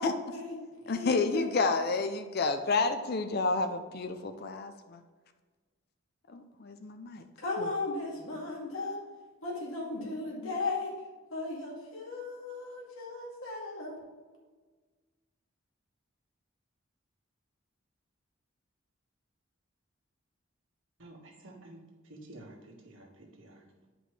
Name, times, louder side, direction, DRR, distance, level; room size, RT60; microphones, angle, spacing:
voice 1, 0.0-1.5 7.4-9.0 9.4-10.9 11.3-14.0, left 3 dB, 85° left, -3 dB, 2.2 m, -36 dB
voice 2, 0.9-5.0 6.3-7.2 7.6-7.7, left 3 dB, 50° left, 8 dB, 0.5 m, -30 dB
voice 3, 21.0-21.8 22.1-23.6, right 1 dB, 70° right, 0 dB, 1.6 m, -51 dB
9.7 x 5.2 x 3.2 m, 1.4 s
head